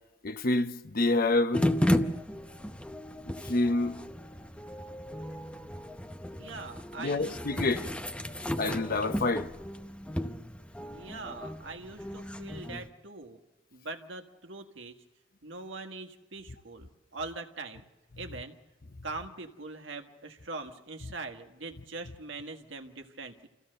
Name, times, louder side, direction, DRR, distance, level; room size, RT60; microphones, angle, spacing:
voice 1, 0.2-1.7 3.4-4.0 7.0-7.9 8.6-9.5, left 2 dB, 50° left, 0.8 m, -27 dB
sound 1, 1.5-12.9, left 1 dB, 5° left, 0.8 m, -34 dB
voice 2, 6.4-7.9 10.9-13.4 13.7-15.0 15.4-17.9 18.2-18.6 19.0-23.5, right 3 dB, 80° right, 1.7 m, -42 dB
27.0 x 15.5 x 6.6 m
head